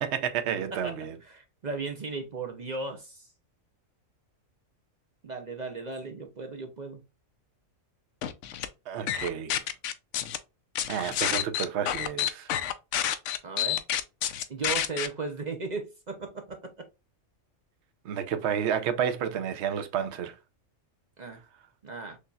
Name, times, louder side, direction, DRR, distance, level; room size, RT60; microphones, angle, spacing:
voice 1, 0.0-1.2 8.9-9.7 10.9-12.5 18.0-20.3, right 8 dB, 60° right, 0.9 m, -30 dB
voice 2, 1.2-3.3 5.2-7.0 13.4-13.8 14.5-16.6 21.2-21.4 21.8-22.2, right 3 dB, 45° right, 0.6 m, -36 dB
sound 1, 8.2-8.7 9.1-10.4 10.8-15.1, left 11 dB, 70° left, 0.9 m, -28 dB
6.4 x 2.7 x 2.3 m
omnidirectional pair, 1.4 m